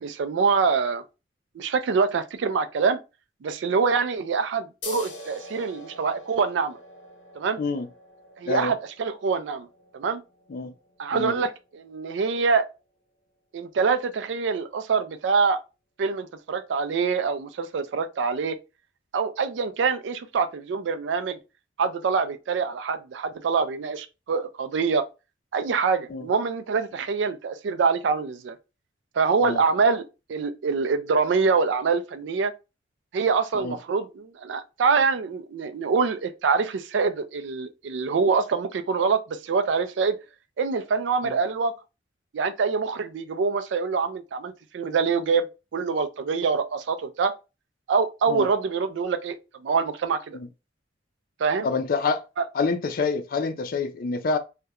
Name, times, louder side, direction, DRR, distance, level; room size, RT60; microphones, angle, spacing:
voice 1, 0.0-1.0 1.6-3.0 3.4-6.8 7.3-7.6 8.4-9.7 9.9-10.2 11.0-12.7 13.5-15.6 16.0-18.6 19.1-21.4 21.8-25.0 25.5-28.6 29.2-30.0 30.3-32.5 33.1-40.2 40.6-41.7 42.3-45.5 45.7-47.3 47.9-50.4 51.4-51.7, right 5 dB, 80° right, 0.4 m, -25 dB
sound 1, 4.8-12.0, left 2 dB, 85° left, 0.7 m, -44 dB
voice 2, 51.6-52.2 52.5-54.4, left 4 dB, 50° left, 0.4 m, -27 dB
2.3 x 2.1 x 2.8 m
head